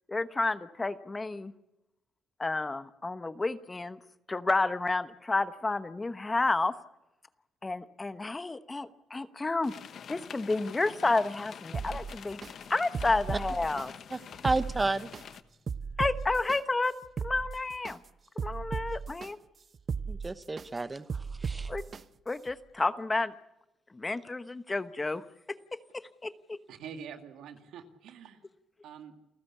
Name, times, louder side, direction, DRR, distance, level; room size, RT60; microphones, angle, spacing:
voice 1, 0.1-1.5 2.4-4.0 4.3-6.7 7.6-9.7 10.1-12.4 12.7-13.9 16.0-16.9 17.2-18.0 18.4-19.4 21.7-21.9 22.3-23.3 23.9-26.6, left 3 dB, 20° left, 12 dB, 1.0 m, -31 dB
sound 1, 9.6-15.4, left 7 dB, 60° left, 1.0 m, -46 dB
sound 2, 11.7-12.5 12.9-13.9 14.3-15.2 15.7-16.6 17.0-17.9 18.4-19.3 19.7-20.7 21.1-22.0 22.5-22.6, right 5 dB, 45° right, 0.7 m, -36 dB
voice 2, 14.4-15.1 20.1-21.7, right 3 dB, 20° right, 12 dB, 1.0 m, -31 dB
voice 3, 26.7-28.4 28.8-29.1, right 7 dB, 80° right, 6 dB, 2.2 m, -45 dB
29.0 x 14.5 x 8.3 m, 0.94 s
cardioid pair, 90°, 0 cm